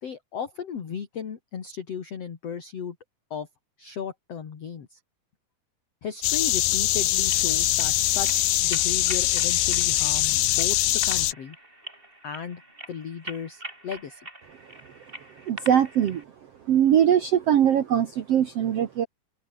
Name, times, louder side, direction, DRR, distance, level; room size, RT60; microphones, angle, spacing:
voice 1, 0.0-3.0 3.3-3.5 3.8-5.0 6.0-11.6 12.2-12.6 12.9-14.3, left 7 dB, 45° left, 3.1 m, -35 dB
sound 1, 6.2-11.3, left 15 dB, 85° left, 3.1 m, -23 dB
sound 2, 7.1-16.2, right 1 dB, 15° right, 5.4 m, -44 dB
voice 2, 15.5-16.2 16.7-19.1, right 9 dB, 65° right, 1.5 m, -21 dB
open air
omnidirectional pair, 4.4 m